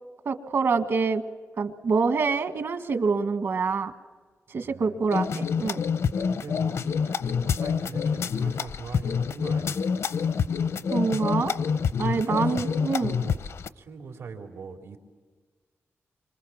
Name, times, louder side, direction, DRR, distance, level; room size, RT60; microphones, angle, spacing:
voice 1, 0.2-1.2 1.6-3.9 4.5-5.8 10.9-11.5 12.0-13.1, right 4 dB, 60° right, 8 dB, 1.6 m, -26 dB
voice 2, 4.6-5.0 6.2-9.9 12.0-12.7 13.1-15.0, right 4 dB, 85° right, 3 dB, 3.3 m, -42 dB
sound 1, 5.1-13.7, left 6 dB, 75° left, 0.7 m, -27 dB
28.0 x 25.0 x 7.3 m, 1.5 s
wide cardioid pair, 155°, 5 cm